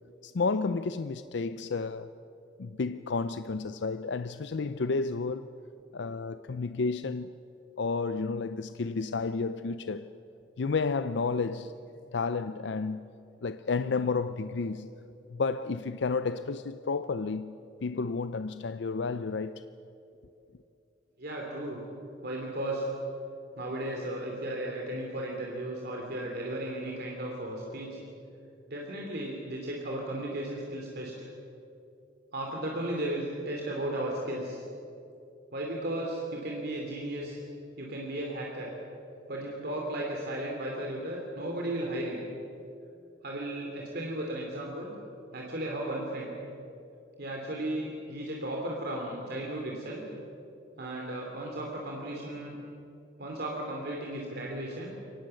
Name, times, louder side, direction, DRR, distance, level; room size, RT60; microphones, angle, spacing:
voice 1, 0.2-2.1 2.6-5.5 5.9-7.3 7.8-10.1 10.6-11.7 12.1-13.0 13.4-14.9 15.3-17.5 17.8-19.6, left 4 dB, 65° left, 0.5 m, -31 dB
voice 2, 21.2-21.8 22.2-22.9 23.6-28.0 28.7-31.3 32.3-34.6 35.5-37.4 37.8-38.7 39.3-42.2 43.2-44.9 45.3-46.3 47.2-50.1 50.8-52.5 53.2-54.9, right 1 dB, 60° right, 2.8 m, -35 dB
24.0 x 18.5 x 7.7 m
head